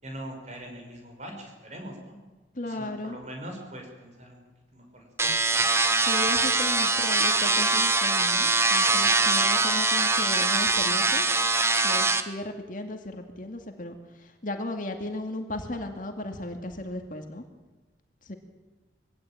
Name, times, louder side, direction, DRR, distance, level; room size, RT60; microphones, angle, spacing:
voice 1, 0.0-2.2 2.6-4.4 4.7-5.6, right 1 dB, 35° right, 3 dB, 5.9 m, -42 dB
voice 2, 2.6-3.2 5.9-11.2 11.8-17.4 18.3-18.4, left 1 dB, 45° left, 5 dB, 2.3 m, -35 dB
sound 1, 5.2-12.2, right 3 dB, 15° right, 1.1 m, -23 dB
23.5 x 17.0 x 9.0 m, 1.2 s
head